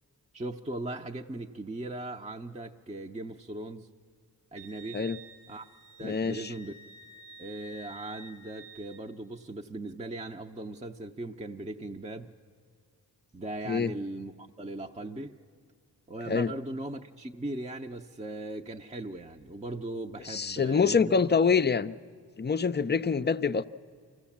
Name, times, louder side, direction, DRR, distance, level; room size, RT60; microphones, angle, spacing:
voice 1, 0.3-3.9 4.5-5.0 5.5-5.7 6.0-6.7 7.4-12.3 13.3-15.3 16.1-21.3, right 2 dB, 15° right, 0.7 m, -39 dB
Wind instrument woodwind instrument, 4.5-9.0, right 3 dB, 85° right, 1.2 m, -50 dB
voice 2, 6.0-6.5 13.7-13.9 16.3-16.5 20.3-22.0 22.4-23.6, left 5 dB, 25° left, 0.5 m, -26 dB
24.5 x 16.0 x 7.2 m
cardioid pair, 50°, 41 cm